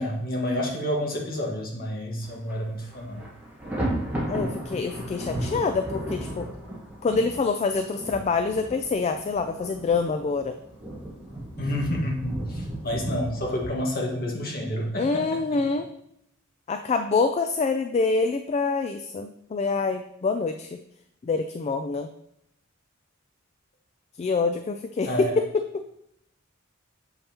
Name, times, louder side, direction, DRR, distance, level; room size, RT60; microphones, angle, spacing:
voice 1, 0.0-3.2 11.6-15.6 25.0-25.3, equal, 50° left, -1 dB, 1.5 m, -29 dB
Thunder, 2.2-2.6 2.9-13.7, right 1 dB, 10° right, 1.4 m, -34 dB
voice 2, 4.2-6.5 7.0-10.6 15.0-15.9 16.7-20.8 21.2-22.1 24.2-25.8, left 4 dB, 35° left, 7 dB, 0.3 m, -26 dB
7.0 x 5.4 x 2.9 m, 0.76 s
head